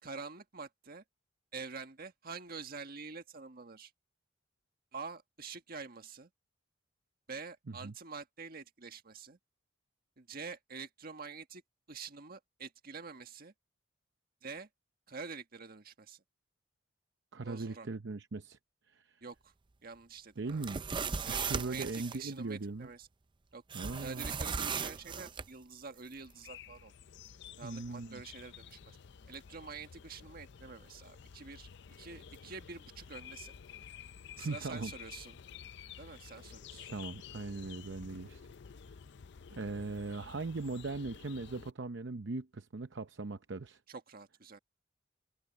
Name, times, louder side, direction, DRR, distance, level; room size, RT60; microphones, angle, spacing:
voice 1, 0.0-1.0 1.5-3.9 4.9-6.3 7.3-9.4 10.2-11.6 11.9-13.5 14.4-14.7 15.1-16.2 17.4-17.9 19.2-19.5 19.8-20.6 21.2-23.1 23.5-23.6 24.0-26.9 27.6-28.8 29.3-31.7 32.0-33.6 34.4-35.4 36.0-36.9 43.9-44.6, right 4 dB, 55° right, 1.6 m, -47 dB
voice 2, 17.3-18.6 18.9-19.2 20.4-21.0 21.3-22.9 23.7-24.3 27.6-28.2 34.4-34.9 36.9-38.4 39.5-43.8, right 3 dB, 70° right, 0.7 m, -39 dB
sound 1, 20.5-22.2 23.7-25.5, right 5 dB, 25° right, 0.5 m, -37 dB
sound 2, 26.2-41.7, left 7 dB, 65° left, 0.5 m, -51 dB
head